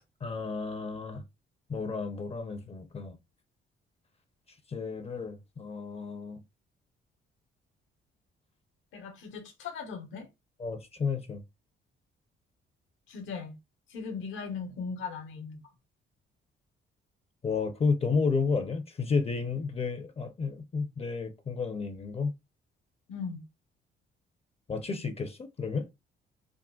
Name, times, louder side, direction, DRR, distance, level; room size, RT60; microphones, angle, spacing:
voice 1, 0.2-1.2 1.7-3.1 4.7-6.4 10.6-11.4 17.4-22.3 24.7-25.9, left 4 dB, 30° left, 0.5 m, -31 dB
voice 2, 8.9-10.3 13.1-13.5 13.9-15.6 23.1-23.4, left 5 dB, 80° left, 1.0 m, -38 dB
3.7 x 2.1 x 2.3 m
cardioid pair, 90°, 20 cm